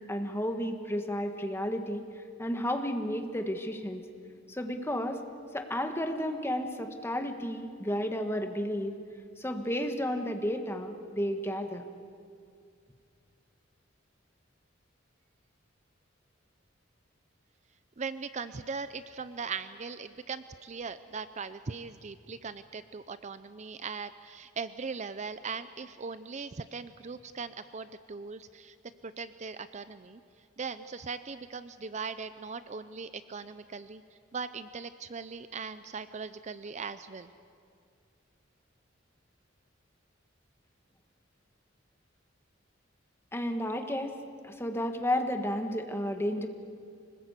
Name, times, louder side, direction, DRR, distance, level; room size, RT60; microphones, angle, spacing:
voice 1, 0.1-2.0 2.4-4.0 4.5-5.2 5.5-8.9 9.4-11.8 43.3-44.1 44.4-46.5, equal, 15° left, 5 dB, 1.5 m, -32 dB
voice 2, 18.0-28.8 29.0-30.2 30.6-34.0 34.3-37.3, right 5 dB, 35° right, 12 dB, 0.5 m, -39 dB
25.5 x 20.0 x 8.2 m, 2.3 s
head